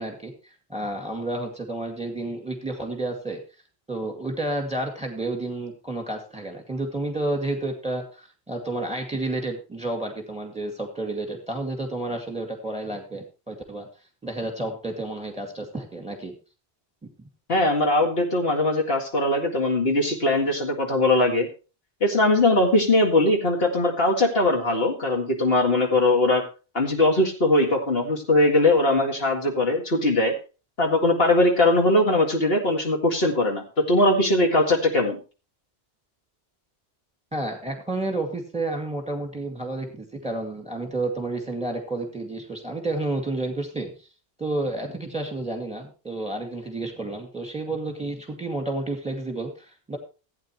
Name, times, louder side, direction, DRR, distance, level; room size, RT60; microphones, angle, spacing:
voice 1, 0.0-3.4 3.9-13.9 14.2-16.3 37.3-44.1 44.4-50.0, right 2 dB, 5° right, 3 dB, 2.0 m, -30 dB
voice 2, 17.5-21.5 22.0-26.4 26.7-30.3 30.8-35.2, left 2 dB, 65° left, 1 dB, 2.3 m, -21 dB
16.0 x 8.9 x 3.0 m, 0.34 s
omnidirectional pair, 1.1 m